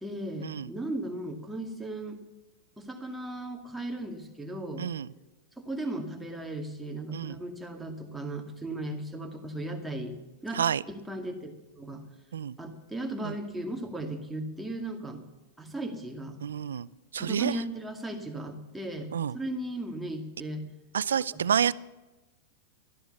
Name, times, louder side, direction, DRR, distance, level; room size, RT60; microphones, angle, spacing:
voice 1, 0.0-2.2 2.8-4.9 5.6-10.1 10.4-10.6 10.9-12.0 12.6-15.2 15.6-16.4 17.2-20.7 21.3-21.4, right 1 dB, 5° right, 3 dB, 2.2 m, -36 dB
voice 2, 4.8-5.1 7.1-7.4 10.5-10.8 12.3-12.5 13.2-13.4 16.4-16.9 17.1-17.6 19.1-19.4 20.9-21.7, right 8 dB, 90° right, 20 dB, 0.5 m, -28 dB
13.5 x 11.0 x 7.1 m, 1.1 s
hypercardioid pair, 120°, 0 cm